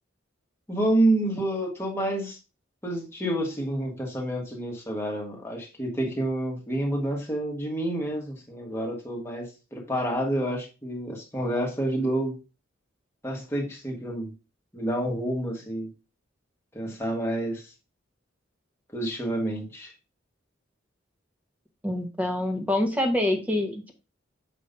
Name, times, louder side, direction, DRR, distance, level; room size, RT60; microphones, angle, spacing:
voice 1, 0.7-2.4 2.8-12.4 13.2-14.3 14.7-15.9 16.7-17.6 18.9-19.9, right 1 dB, 15° left, -1 dB, 1.5 m, -28 dB
voice 2, 21.8-23.9, left 1 dB, 10° right, 3 dB, 1.2 m, -26 dB
7.0 x 2.9 x 5.3 m, 0.30 s
head